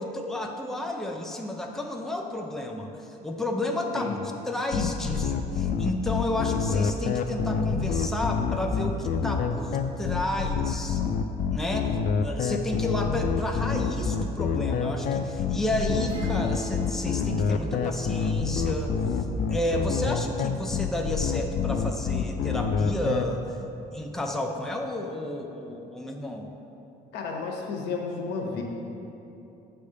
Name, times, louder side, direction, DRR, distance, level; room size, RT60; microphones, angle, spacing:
voice 1, 0.0-2.9 3.2-11.0 11.5-18.9 19.5-23.5 23.9-26.5, left 1 dB, ahead, 2 dB, 0.6 m, -31 dB
sound 1, 4.7-23.2, left 6 dB, 50° left, 0.4 m, -27 dB
sound 2, 16.1-19.8, right 1 dB, 30° right, 1.5 m, -41 dB
voice 2, 27.1-28.6, left 4 dB, 80° left, 1 dB, 1.0 m, -32 dB
8.1 x 3.4 x 6.6 m, 2.9 s
cardioid pair, 110°, 17 cm